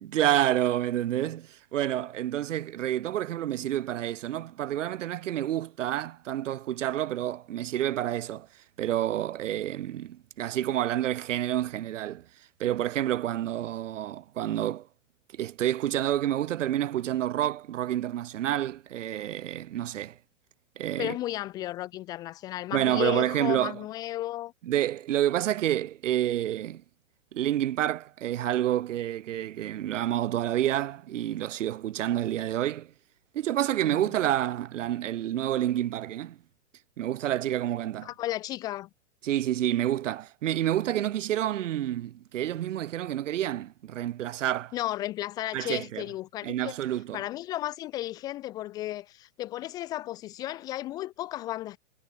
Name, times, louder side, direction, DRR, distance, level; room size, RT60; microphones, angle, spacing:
voice 1, 0.0-8.5 8.8-12.2 12.6-14.9 15.3-20.1 20.8-21.1 22.7-23.7 24.7-26.8 27.3-32.9 33.3-36.4 37.0-38.1 39.2-44.7 45.5-46.0 46.4-47.2, right 12 dB, 80° right, 1.0 m, -29 dB
voice 2, 21.0-24.5 33.9-34.1 38.0-38.9 44.7-46.8 47.1-51.8, left 14 dB, 10° left, 0.4 m, -34 dB
hypercardioid pair, 155°, 36 cm